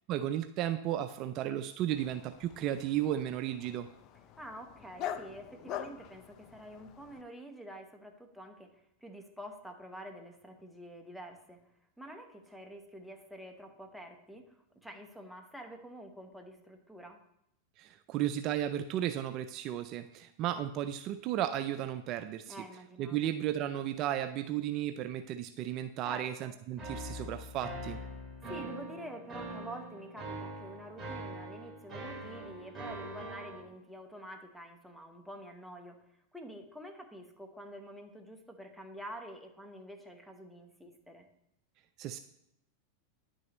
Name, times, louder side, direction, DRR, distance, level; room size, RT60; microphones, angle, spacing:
voice 1, 0.1-3.9 17.8-22.6 23.0-28.0 42.0-42.2, right 11 dB, 45° right, 10 dB, 0.4 m, -34 dB
Dog, 1.9-7.2, left 10 dB, 45° left, 0.5 m, -45 dB
voice 2, 4.4-11.6 12.0-17.2 22.5-23.3 26.0-26.5 28.4-36.0 36.3-41.3, equal, ahead, 3 dB, 1.0 m, -48 dB
sound 1, 26.8-33.6, right 1 dB, 20° right, 2.3 m, -43 dB
10.0 x 6.3 x 3.0 m, 0.82 s
hypercardioid pair, 115°, 0 cm